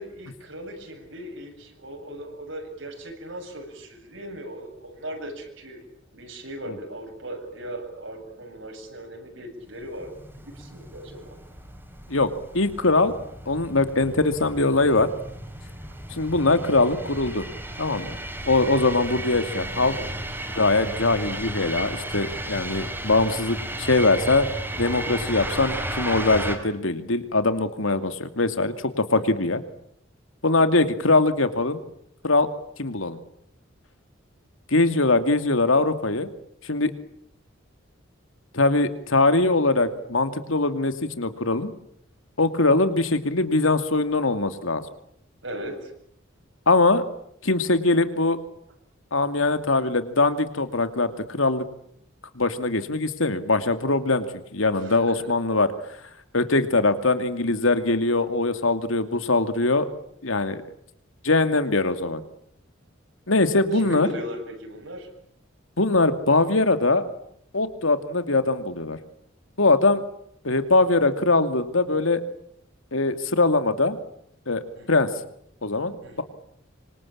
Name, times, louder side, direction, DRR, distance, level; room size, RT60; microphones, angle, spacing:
voice 1, 0.0-5.8 6.1-10.1 10.4-11.4 19.8-20.1 29.1-29.4 45.4-45.9 54.7-55.3 63.7-65.1 74.7-75.1 76.0-76.2, equal, 70° right, 4 dB, 8.0 m, -38 dB
sound 1, 9.8-26.6, right 1 dB, 10° right, 4.8 m, -34 dB
voice 2, 12.5-13.1 13.5-15.1 16.1-17.5 17.8-18.2 18.5-19.9 20.5-24.5 24.8-29.6 30.4-31.8 32.2-32.5 32.8-33.2 34.7-36.3 36.6-36.9 38.5-41.7 42.4-44.8 46.7-47.0 47.4-48.4 49.1-51.6 52.4-55.7 56.3-59.9 60.2-60.6 61.2-62.2 63.3-64.1 65.8-67.0 67.5-69.0 69.6-70.0 70.4-72.2 72.9-74.0 74.5-74.6 74.9-75.1 75.6-76.2, left 2 dB, 90° left, 10 dB, 2.6 m, -22 dB
26.0 x 26.0 x 8.7 m, 0.70 s
head